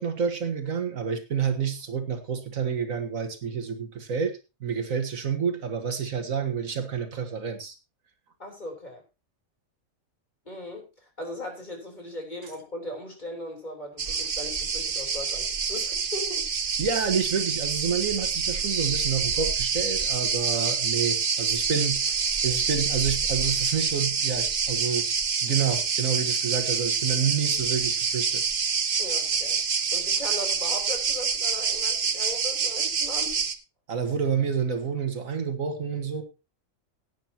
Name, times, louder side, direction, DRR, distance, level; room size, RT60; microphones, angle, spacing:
voice 1, 0.0-7.7 16.8-25.1 25.4-28.4 33.9-36.2, right 6 dB, 75° right, 7 dB, 1.8 m, -29 dB
voice 2, 8.4-9.0 10.5-16.8 29.0-33.4, left 1 dB, 30° left, 1 dB, 3.8 m, -38 dB
sound 1, 14.0-33.6, right 6 dB, 45° right, 1.0 m, -27 dB
17.5 x 9.3 x 2.8 m, 0.28 s
omnidirectional pair, 1.4 m